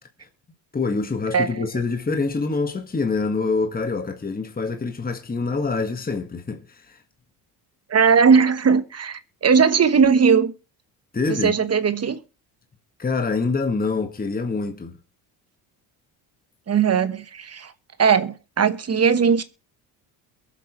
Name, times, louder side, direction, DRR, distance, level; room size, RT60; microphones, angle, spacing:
voice 1, 0.7-7.0 11.1-11.5 13.0-15.0, left 4 dB, 20° left, 1.7 m, -25 dB
voice 2, 7.9-10.5 11.2-12.2 16.7-17.7 18.0-19.4, right 6 dB, 35° right, 1.2 m, -18 dB
22.5 x 7.7 x 3.1 m
supercardioid pair, 80°, 44 cm